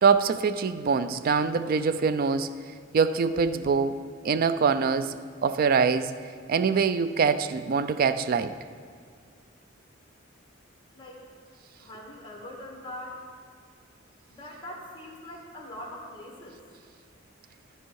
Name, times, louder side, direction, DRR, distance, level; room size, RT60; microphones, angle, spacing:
voice 1, 0.0-2.5 2.9-4.0 4.2-5.2 5.4-6.1 6.5-8.5, right 5 dB, 50° right, 13 dB, 0.3 m, -24 dB
voice 2, 11.8-13.2 14.3-16.6, left 1 dB, 25° left, -2 dB, 1.6 m, -42 dB
13.0 x 4.6 x 4.6 m, 2.1 s
head